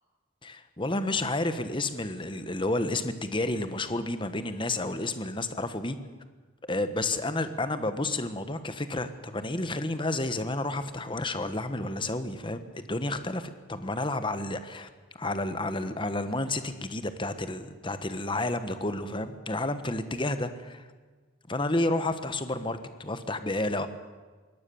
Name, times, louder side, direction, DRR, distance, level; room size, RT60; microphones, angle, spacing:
voice 1, 0.4-6.0 6.6-14.9 15.2-20.8 21.5-23.9, left 2 dB, 25° left, 10 dB, 1.2 m, -31 dB
23.0 x 18.0 x 7.1 m, 1.4 s
head